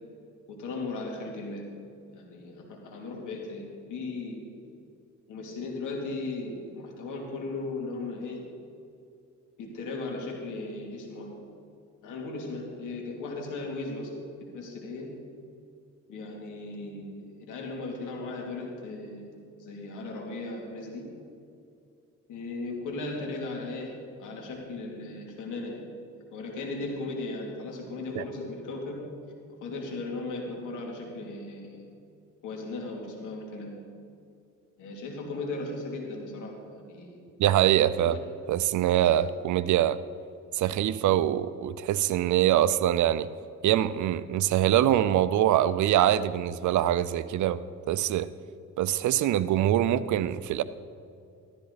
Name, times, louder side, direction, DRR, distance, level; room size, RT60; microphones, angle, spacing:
voice 1, 0.5-1.6 2.1-4.4 5.3-8.4 9.6-11.3 12.0-14.1 14.5-15.1 16.1-17.1 17.4-19.2 19.6-21.1 22.3-23.9 24.2-25.8 26.3-28.9 29.6-31.8 32.4-33.8 34.8-37.2 38.0-38.2 39.0-39.1, left 3 dB, 85° left, -1 dB, 2.8 m, -37 dB
voice 2, 37.4-38.2 38.5-40.0 40.5-43.3 43.6-47.6 47.9-48.3 48.8-50.6, right 12 dB, 75° right, 15 dB, 0.6 m, -24 dB
13.5 x 13.5 x 4.1 m, 2.5 s
cardioid pair, 90°, 30 cm